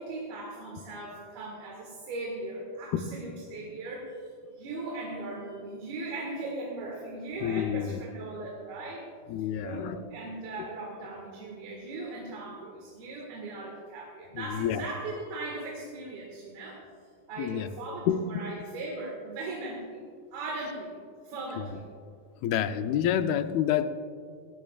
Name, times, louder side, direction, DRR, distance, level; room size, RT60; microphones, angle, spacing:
voice 1, 0.0-4.2 4.6-9.1 9.4-16.8 17.3-20.0 20.3-21.0 21.2-21.8, right 2 dB, 80° right, -2 dB, 3.7 m, -38 dB
voice 2, 7.4-8.0 9.3-10.0 14.4-14.8 17.4-17.7 18.1-18.5 22.4-23.9, left 9 dB, 85° left, 10 dB, 2.5 m, -28 dB
19.0 x 17.5 x 2.4 m, 2.2 s
omnidirectional pair, 4.3 m